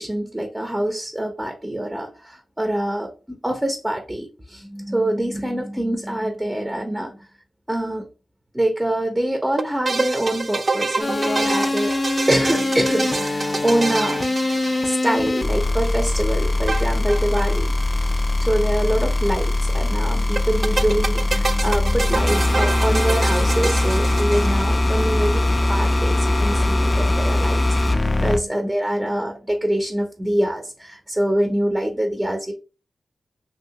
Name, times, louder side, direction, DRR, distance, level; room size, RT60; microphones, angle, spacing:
voice 1, 0.0-7.2 7.7-8.1 8.5-11.9 12.3-14.3 14.8-17.7 18.4-32.5, right 1 dB, 15° right, 3 dB, 0.6 m, -25 dB
sound 1, 9.6-15.4 16.7-17.5 17.8-17.9 18.0-18.1 20.4-24.9, right 3 dB, 50° right, 0.3 m, -27 dB
sound 2, 11.0-28.4, left 2 dB, 40° left, 0.4 m, -21 dB
2.9 x 2.7 x 2.8 m, 0.32 s
cardioid pair, 60°, 0 cm